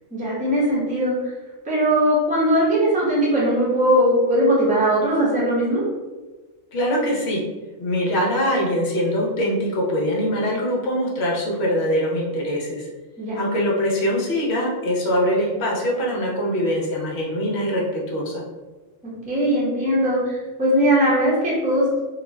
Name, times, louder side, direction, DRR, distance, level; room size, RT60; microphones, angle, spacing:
voice 1, 0.1-1.1 1.6-5.8 13.2-13.4 19.2-22.0, equal, 10° right, -7 dB, 0.7 m, -20 dB
voice 2, 6.7-7.4 7.8-12.9 13.3-18.4, equal, 60° left, -2 dB, 0.9 m, -23 dB
2.4 x 2.4 x 3.1 m, 1.2 s
omnidirectional pair, 1.3 m